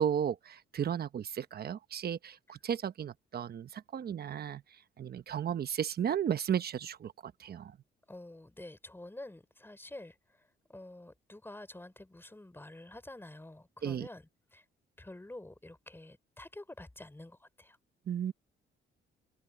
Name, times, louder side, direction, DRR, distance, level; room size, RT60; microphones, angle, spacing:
voice 1, 0.0-4.6 5.0-7.7 13.8-14.1 18.1-18.3, right 9 dB, 50° right, 1.1 m, -34 dB
voice 2, 8.1-14.6 15.0-17.8, left 1 dB, 10° left, 5.2 m, -49 dB
open air
cardioid pair, 90°, 20 cm